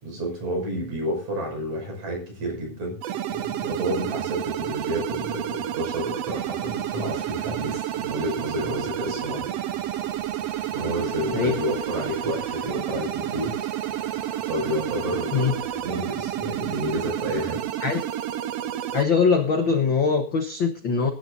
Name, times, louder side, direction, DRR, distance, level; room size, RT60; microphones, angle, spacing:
voice 1, 0.0-3.0 3.3-9.7 10.7-13.6 14.5-15.5 15.8-17.6, equal, 55° right, 1 dB, 7.4 m, -30 dB
sound 1, 3.0-19.1, right 11 dB, 90° right, 1.4 m, -30 dB
sound 2, 6.3-17.5, left 4 dB, 85° left, 4.5 m, -47 dB
voice 2, 18.9-21.1, left 5 dB, 70° left, 6 dB, 1.1 m, -22 dB
22.5 x 11.5 x 2.6 m, 0.33 s
omnidirectional pair, 3.9 m